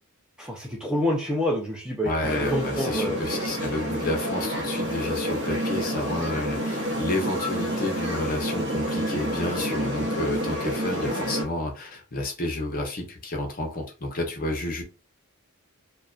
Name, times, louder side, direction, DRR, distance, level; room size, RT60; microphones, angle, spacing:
voice 1, 0.4-2.1 2.4-3.4, equal, 5° right, -1 dB, 0.4 m, -27 dB
voice 2, 2.0-14.8, left 2 dB, 40° left, 1 dB, 0.7 m, -30 dB
sound 1, 2.2-11.4, equal, 55° right, 0.7 m, -29 dB
2.5 x 2.1 x 2.3 m, 0.32 s
head